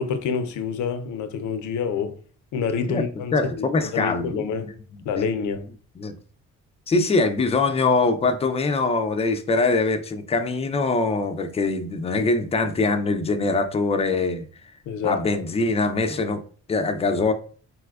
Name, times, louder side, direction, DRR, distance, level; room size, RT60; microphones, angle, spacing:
voice 1, 0.0-2.2 2.5-4.7 5.1-5.7 12.1-12.3 14.9-15.4, left 6 dB, 75° left, 0.5 m, -27 dB
voice 2, 3.3-5.3 6.0-6.1 6.9-14.4 15.0-16.4 16.7-17.3, left 3 dB, 20° left, 0.4 m, -23 dB
4.2 x 2.2 x 2.3 m
cardioid pair, 90°, 30 cm